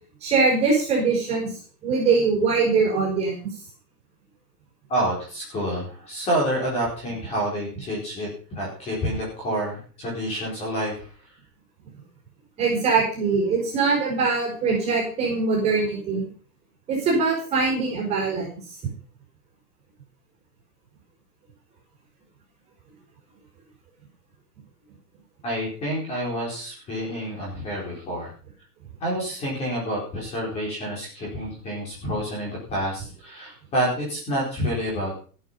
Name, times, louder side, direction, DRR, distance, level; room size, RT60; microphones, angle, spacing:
voice 1, 0.2-1.5 1.8-3.5 12.6-16.2 16.9-18.5, right 4 dB, 15° right, -2 dB, 4.9 m, -22 dB
voice 2, 4.9-8.3 8.5-11.1 25.4-28.3 29.0-35.2, equal, 15° left, -3 dB, 4.5 m, -28 dB
15.0 x 9.4 x 5.6 m, 0.41 s
hypercardioid pair, 180°, 48 cm